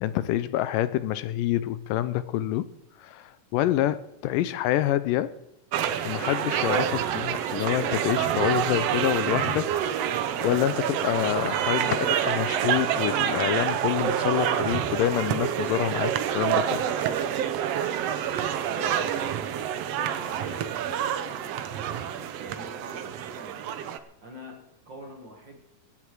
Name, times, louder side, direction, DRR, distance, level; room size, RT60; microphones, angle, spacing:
voice 1, 0.0-2.7 3.0-5.3 6.0-9.7 10.4-16.8, left 13 dB, 80° left, 2.2 m, -27 dB
sound 1, 5.7-24.0, right 9 dB, 85° right, 1.4 m, -27 dB
Trickle dribble / Fill (with liquid), 10.1-17.2, right 2 dB, 20° right, 6.8 m, -49 dB
voice 2, 18.7-23.8 24.2-25.6, right 1 dB, 45° right, 1.7 m, -45 dB
23.5 x 8.6 x 4.7 m
omnidirectional pair, 4.0 m